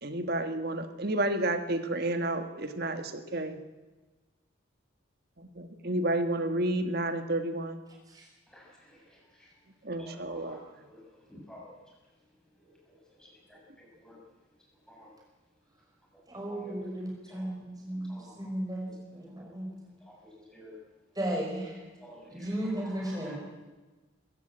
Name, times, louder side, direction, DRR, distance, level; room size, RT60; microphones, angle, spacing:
voice 1, 0.0-3.6 5.4-7.8 9.8-10.6, right 1 dB, 50° right, 8 dB, 1.6 m, -31 dB
voice 2, 10.0-10.6 10.9-11.0 11.3-11.6 13.2-13.6 14.0-14.2 14.9-15.1 16.5-16.7 17.3-17.5 18.1-18.3 20.1-20.2 20.5-20.7 22.0-22.2 22.6-23.4, equal, 5° left, -3 dB, 6.4 m, -50 dB
voice 3, 16.3-18.9 19.1-19.7 21.2-21.8 22.3-23.4, right 1 dB, 20° right, -1 dB, 5.7 m, -35 dB
21.5 x 15.5 x 8.9 m, 1.2 s
head